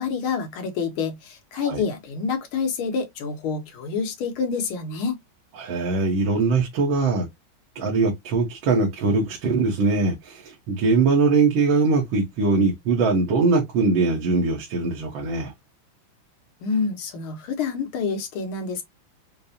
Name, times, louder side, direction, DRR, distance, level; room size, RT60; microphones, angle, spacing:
voice 1, 0.0-5.2 16.6-18.8, left 5 dB, 85° left, 1.8 m, -27 dB
voice 2, 5.6-7.3 7.8-15.5, right 3 dB, 75° right, 1.7 m, -21 dB
5.1 x 2.0 x 2.7 m
omnidirectional pair, 2.2 m